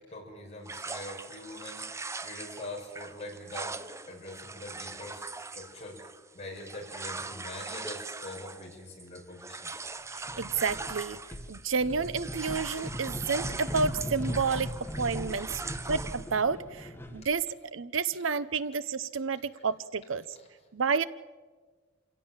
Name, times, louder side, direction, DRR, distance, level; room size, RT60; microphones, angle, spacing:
voice 1, 0.1-3.8 4.1-5.3 5.5-6.0 6.3-9.7 20.4-20.5, left 1 dB, 35° left, -1 dB, 5.4 m, -43 dB
sound 1, 0.7-11.8 12.0-16.3, right 3 dB, 15° right, 0.6 m, -41 dB
voice 2, 10.1-11.2 11.5-14.7 15.0-15.6 15.9-17.5 17.7-20.2 20.7-21.0, right 5 dB, 85° right, 16 dB, 0.8 m, -30 dB
sound 2, 10.3-11.0 11.3-17.3, equal, 10° left, 1.6 m, -38 dB
26.5 x 17.0 x 7.3 m, 1.4 s
head